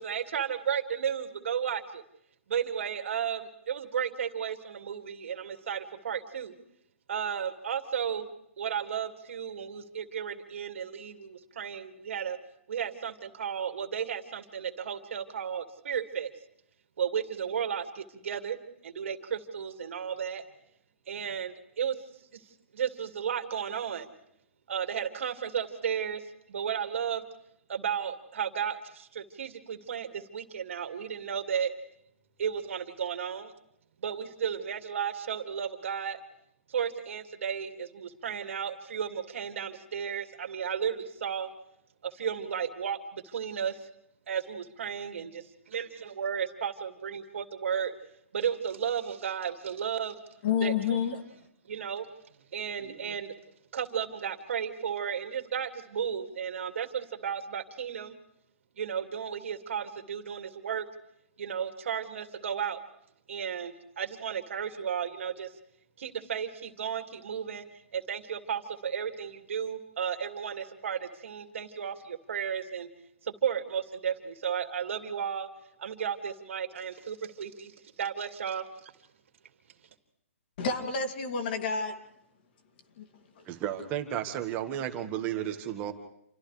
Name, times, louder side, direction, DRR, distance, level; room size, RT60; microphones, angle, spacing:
voice 1, 0.0-2.0 2.5-6.5 7.1-8.3 8.6-12.4 12.7-16.3 17.0-18.6 18.8-20.4 21.1-22.0 22.3-22.4 22.7-24.1 24.7-27.2 27.7-31.7 32.4-33.5 34.0-36.2 36.7-41.5 42.0-43.8 44.3-47.9 48.3-50.2 50.6-51.2 51.7-52.1 52.5-53.3 53.7-58.2 58.8-60.9 61.4-62.8 63.3-65.5 66.0-67.6 67.9-72.9 73.2-75.5 75.8-78.9, right 8 dB, 65° right, 7 dB, 2.4 m, -34 dB
voice 2, 50.4-51.1 80.6-81.9 83.0-83.1, left 6 dB, 45° left, 5 dB, 2.7 m, -29 dB
voice 3, 83.5-85.9, right 11 dB, 25° right, 6 dB, 1.6 m, -33 dB
29.5 x 27.5 x 3.4 m, 0.75 s
hypercardioid pair, 155°, 7 cm